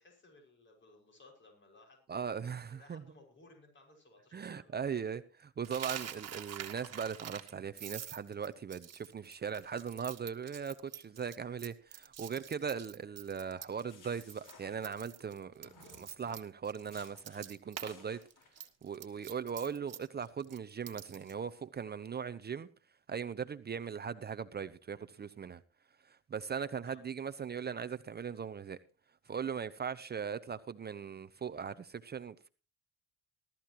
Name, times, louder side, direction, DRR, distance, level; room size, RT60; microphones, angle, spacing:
voice 1, 0.0-2.2 2.7-5.1 26.8-27.0, left 2 dB, 30° left, 6.0 m, -61 dB
voice 2, 2.1-3.0 4.3-15.7 16.0-18.2 18.8-22.7 23.1-25.6 26.1-28.8 29.3-32.5, right 7 dB, 25° right, 0.7 m, -39 dB
Coin (dropping), 5.6-13.9 14.2-14.5 14.8-17.9 18.2-21.3, right 9 dB, 40° right, 1.8 m, -46 dB
sound 1, 13.6-15.3 15.6-16.4 16.9-17.5 17.8-18.6, left 3 dB, 55° left, 4.7 m, -59 dB
19.0 x 13.5 x 3.0 m
supercardioid pair, 95°, 38 cm